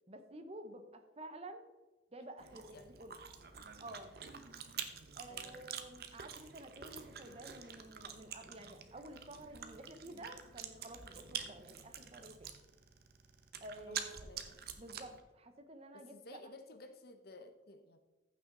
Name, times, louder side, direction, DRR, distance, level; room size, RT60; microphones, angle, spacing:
voice 1, 0.1-1.7 2.1-3.2 3.8-4.2 5.2-12.5 13.6-14.3 14.8-16.4, right 1 dB, 35° right, 8 dB, 0.9 m, -51 dB
Chewing mastication, 2.4-15.2, right 7 dB, 55° right, 0.9 m, -47 dB
voice 2, 2.5-2.9 5.3-5.7 13.8-14.7 15.9-18.0, left 2 dB, 55° left, 8 dB, 0.9 m, -55 dB
14.5 x 6.0 x 3.9 m, 1.1 s
head